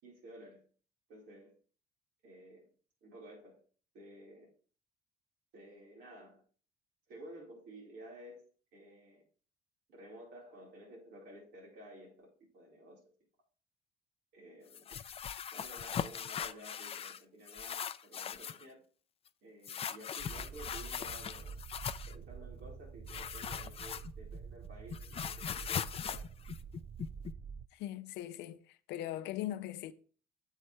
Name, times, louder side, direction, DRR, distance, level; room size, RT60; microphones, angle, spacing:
voice 1, 0.0-0.6 1.1-1.5 2.2-2.7 3.0-3.6 3.9-4.5 5.5-6.4 7.1-8.5 8.7-9.2 9.9-13.0 14.3-14.9 15.5-18.8 19.4-21.6 22.1-26.3, right 1 dB, 80° right, 4.4 m, -53 dB
sound 1, 14.7-17.2 17.5-18.7 19.6-22.2 23.1-24.4 24.6-27.3, left 8 dB, 35° left, 0.5 m, -40 dB
sound 2, 20.2-27.7, right 6 dB, 25° right, 0.4 m, -47 dB
voice 2, 27.7-29.9, left 13 dB, 85° left, 0.6 m, -40 dB
8.1 x 7.4 x 3.3 m
cardioid pair, 110°, 17 cm